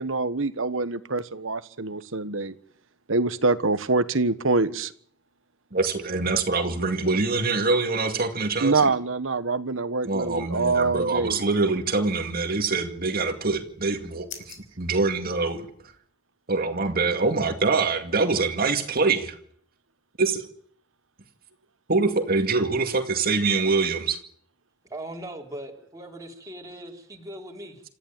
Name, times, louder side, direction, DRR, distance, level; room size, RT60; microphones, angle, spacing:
voice 1, 0.0-2.5 3.1-4.9 8.6-11.4, right 3 dB, 75° right, 1.4 m, -25 dB
voice 2, 5.7-8.9 10.0-15.7 16.5-19.4 20.2-20.4 21.9-24.2, right 3 dB, 50° right, 2.2 m, -24 dB
sound 1, 13.2-16.0, left 8 dB, 70° left, 5.0 m, -48 dB
voice 3, 24.9-27.8, right 1 dB, 15° right, 3.8 m, -39 dB
28.0 x 14.0 x 9.1 m
head